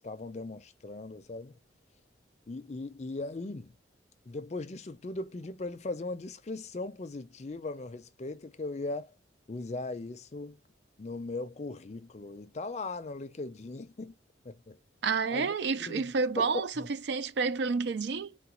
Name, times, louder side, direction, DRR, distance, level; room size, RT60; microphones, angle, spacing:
voice 1, 0.0-1.6 2.5-3.8 4.3-9.1 9.5-10.6 11.0-14.1 14.4-14.8 15.3-16.1 16.4-16.9, left 2 dB, 35° left, 0.5 m, -39 dB
voice 2, 15.0-18.4, right 4 dB, 65° right, 0.4 m, -30 dB
3.9 x 2.2 x 4.4 m
head